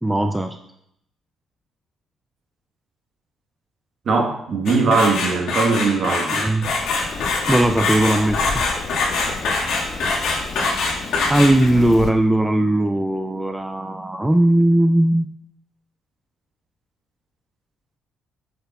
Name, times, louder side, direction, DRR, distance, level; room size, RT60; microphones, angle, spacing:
voice 1, 0.0-0.6 6.4-6.7 7.5-8.4 11.3-15.3, right 1 dB, 5° right, 6 dB, 0.3 m, -18 dB
voice 2, 4.0-6.5, right 4 dB, 45° right, 2 dB, 1.2 m, -20 dB
sound 1, 4.7-11.8, left 3 dB, 75° left, 1.8 m, -23 dB
Rain, 6.6-12.1, left 4 dB, 50° left, 0.6 m, -32 dB
7.7 x 6.7 x 2.3 m, 0.75 s
cardioid pair, 120°, 0 cm